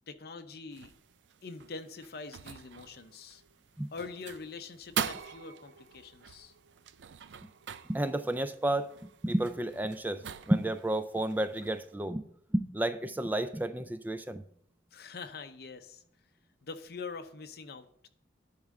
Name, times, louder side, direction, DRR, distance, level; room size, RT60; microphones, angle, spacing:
voice 1, 0.1-0.9 1.4-3.4 3.9-6.5 14.9-16.0 16.6-18.1, left 4 dB, 55° left, 8 dB, 0.7 m, -44 dB
sound 1, 0.7-11.9, right 7 dB, 75° right, 0.4 m, -43 dB
voice 2, 7.9-12.2 12.5-14.4, right 1 dB, 10° right, 10 dB, 0.3 m, -31 dB
10.5 x 3.6 x 6.4 m, 0.68 s
head